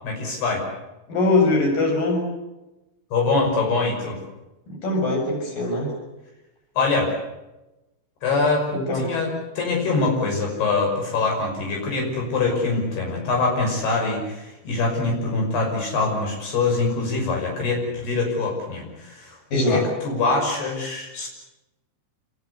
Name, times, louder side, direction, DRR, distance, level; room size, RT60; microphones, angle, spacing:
voice 1, 0.0-0.6 3.1-4.2 6.8-7.1 8.2-8.7 8.9-9.3 9.6-19.4 19.7-21.3, left 3 dB, 80° left, 0 dB, 8.0 m, -24 dB
voice 2, 1.1-2.2 4.7-6.0 8.7-9.2 19.5-19.9, left 2 dB, 60° left, 2 dB, 8.6 m, -22 dB
28.0 x 22.0 x 8.4 m, 1.0 s
omnidirectional pair, 4.6 m